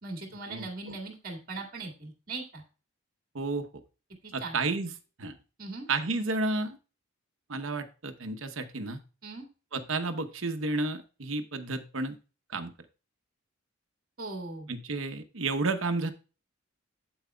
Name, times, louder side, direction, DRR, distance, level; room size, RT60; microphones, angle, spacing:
voice 1, 0.0-2.6 4.2-4.6 5.6-5.9 9.2-9.5 14.2-14.7, right 3 dB, 45° right, 2 dB, 2.0 m, -39 dB
voice 2, 3.3-3.7 4.3-4.9 5.2-5.4 5.9-6.8 7.5-9.0 9.7-12.2 12.5-12.7 14.7-16.1, right 3 dB, 70° right, 8 dB, 0.9 m, -31 dB
8.8 x 7.9 x 2.3 m, 0.33 s
head